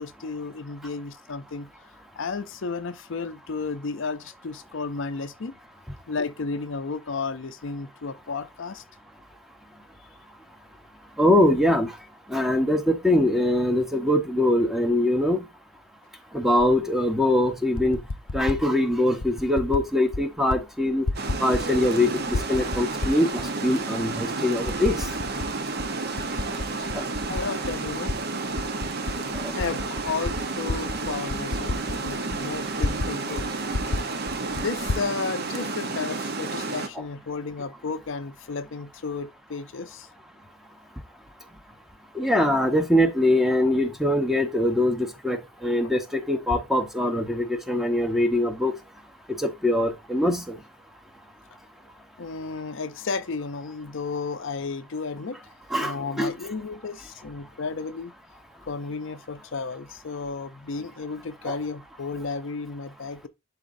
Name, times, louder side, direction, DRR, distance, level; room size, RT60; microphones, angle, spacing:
voice 1, 0.0-1.7 2.2-5.5 6.1-8.8 26.8-28.1 29.5-33.5 33.9-34.2 34.5-40.1 52.2-55.4 55.8-58.1 58.7-63.3, left 4 dB, 60° left, 0.5 m, -33 dB
voice 2, 11.2-11.9 12.3-15.4 16.3-18.0 18.3-21.0 21.4-25.1 26.9-27.0 29.3-29.5 42.1-48.7 49.4-50.6 55.7-56.3 61.5-61.6, left 1 dB, ahead, 0.9 m, -23 dB
Typing, 16.6-16.7 17.6-18.6 19.2-19.8 20.1-20.6 20.9-22.0 22.3-23.5 24.0-24.1 24.7-25.5 25.8-28.2 28.5-33.1 33.4-33.5 33.7-35.1, left 2 dB, 90° left, 0.8 m, -31 dB
Water, 21.1-36.9, right 3 dB, 45° right, 0.9 m, -31 dB
11.0 x 4.2 x 2.6 m
head